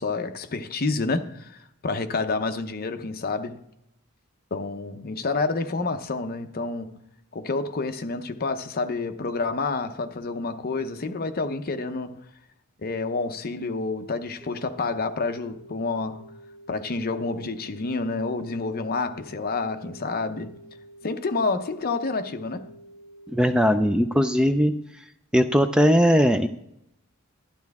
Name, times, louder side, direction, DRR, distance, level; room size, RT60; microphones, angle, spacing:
voice 1, 0.0-3.6 4.5-7.0 7.3-12.2 12.8-16.3 16.7-20.6 21.0-22.7, left 3 dB, 45° left, 0.7 m, -29 dB
sound 1, 14.4-24.4, right 1 dB, 20° right, 2.4 m, -49 dB
voice 2, 23.3-24.7 25.3-26.5, equal, 5° right, 0.3 m, -19 dB
11.5 x 10.5 x 3.5 m
head